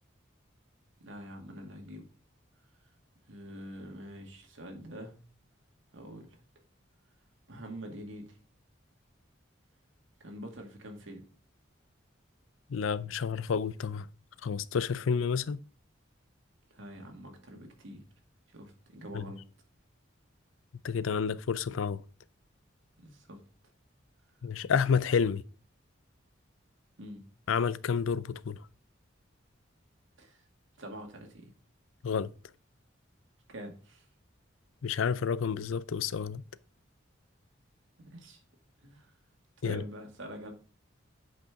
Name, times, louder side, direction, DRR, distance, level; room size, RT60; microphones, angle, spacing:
voice 1, 1.0-2.1 2.8-2.9 3.3-5.2 5.9-6.4 7.5-8.4 10.2-11.3 16.7-18.0 18.5-19.4 23.0-23.4 27.0-27.3 30.2-30.5 30.8-31.5 33.5-34.1 38.0-38.4 38.8-39.1 39.6-40.5, equal, 75° right, 2.2 m, -45 dB
voice 2, 12.7-14.1 14.4-15.6 19.1-19.2 20.8-22.0 24.4-25.4 27.5-28.6 32.0-32.3 34.8-36.4 39.6-39.8, left 6 dB, 90° left, 0.5 m, -30 dB
8.5 x 5.2 x 3.7 m
head